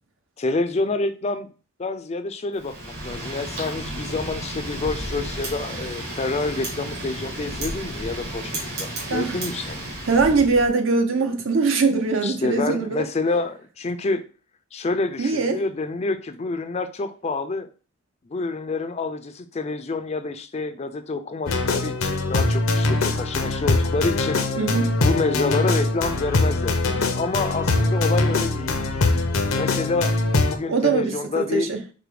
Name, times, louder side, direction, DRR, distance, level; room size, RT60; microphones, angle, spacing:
voice 1, 0.4-1.5 1.8-9.8 12.2-14.2 14.7-17.7 18.3-24.4 25.0-28.8 29.5-30.1 30.5-31.7, left 3 dB, 30° left, 0.4 m, -28 dB
Wind, 2.6-10.7, right 1 dB, 50° right, 2.0 m, -32 dB
voice 2, 10.1-13.1 15.2-15.6 24.6-25.0 30.7-31.8, right 4 dB, 70° right, 0.8 m, -22 dB
sound 1, 21.5-30.6, left 2 dB, 80° left, 0.7 m, -22 dB
4.8 x 2.2 x 4.8 m
head